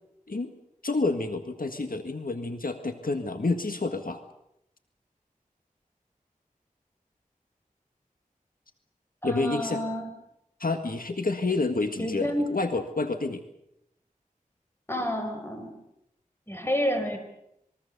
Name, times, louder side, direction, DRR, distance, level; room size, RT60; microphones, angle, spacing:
voice 1, 0.8-4.2 9.2-9.8 10.6-13.4, left 3 dB, 75° left, 7 dB, 1.8 m, -29 dB
voice 2, 9.2-10.1 12.0-12.5 14.9-15.8 16.5-17.2, equal, 15° left, 5 dB, 5.5 m, -29 dB
27.0 x 22.5 x 6.9 m, 0.80 s
wide cardioid pair, 55°, 15 cm